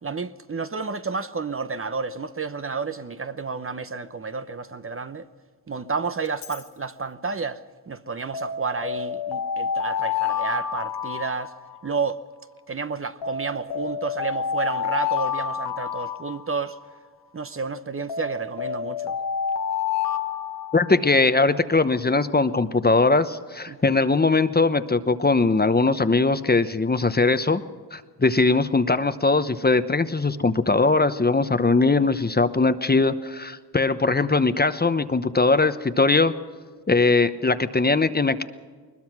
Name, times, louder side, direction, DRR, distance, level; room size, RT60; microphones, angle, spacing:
voice 1, 0.0-5.3 5.7-11.5 11.8-12.2 12.7-16.8 17.3-19.2 23.7-24.0, right 4 dB, 30° right, 0.8 m, -31 dB
Alarm, 6.2-6.6 8.3-12.1 13.2-17.0 18.1-21.3, left 7 dB, 80° left, 1.6 m, -29 dB
voice 2, 20.7-27.6 27.9-36.3 36.9-38.4, left 3 dB, 25° left, 0.9 m, -20 dB
21.0 x 21.0 x 6.1 m
cardioid pair, 85°, 42 cm